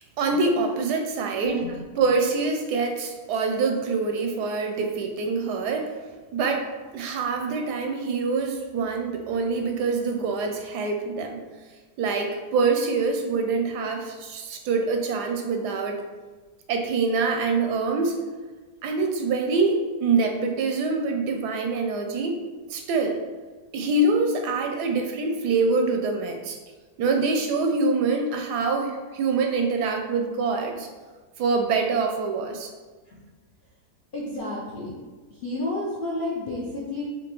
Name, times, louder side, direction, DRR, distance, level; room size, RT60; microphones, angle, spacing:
voice 1, 0.2-1.6 2.0-5.9 6.3-6.7 6.9-11.4 12.0-16.0 16.7-18.2 18.8-22.4 22.7-23.2 23.7-26.6 27.0-30.9 31.4-32.7, right 4 dB, 85° right, 3 dB, 1.2 m, -25 dB
voice 2, 1.2-1.8 33.0-33.2 34.1-35.0 35.3-37.0, left 2 dB, 60° left, -6 dB, 0.5 m, -31 dB
5.2 x 2.9 x 3.0 m, 1.3 s
omnidirectional pair, 1.7 m